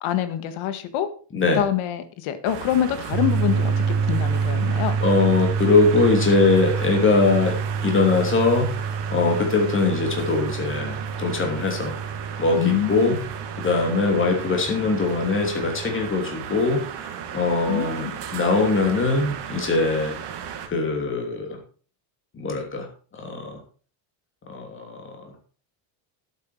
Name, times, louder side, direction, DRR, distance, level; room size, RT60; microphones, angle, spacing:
voice 1, 0.0-1.1 1.5-5.0 12.5-13.2 17.7-18.2, left 11 dB, 70° left, 11 dB, 1.8 m, -25 dB
sound 1, 2.4-20.7, right 8 dB, 60° right, 2.0 m, -35 dB
sound 2, 3.1-16.0, right 5 dB, 80° right, 3.6 m, -28 dB
voice 2, 5.0-7.6 7.8-8.7 9.1-11.9 12.4-13.2 13.6-18.0 18.3-20.1 20.7-21.6 22.3-22.9 23.2-23.6 24.5-25.3, left 3 dB, 25° left, 3 dB, 3.0 m, -22 dB
11.0 x 8.5 x 4.6 m, 0.40 s
cardioid pair, 165°, 49 cm